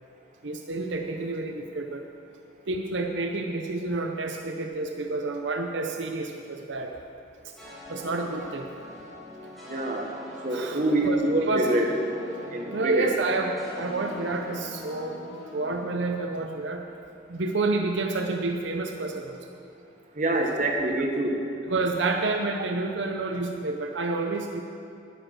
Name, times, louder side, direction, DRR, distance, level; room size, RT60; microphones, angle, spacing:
voice 1, 0.4-2.0 2.7-7.0 7.9-8.7 10.5-11.7 12.7-16.8 17.3-19.4 20.3-20.5 21.6-24.6, right 3 dB, 75° right, 3 dB, 0.7 m, -29 dB
sound 1, 7.6-16.9, left 1 dB, ahead, 2.7 m, -43 dB
voice 2, 9.7-10.1 10.4-11.9 12.5-13.1 20.2-21.5, right 1 dB, 40° right, 1 dB, 1.3 m, -25 dB
11.0 x 10.0 x 6.5 m, 2.7 s
head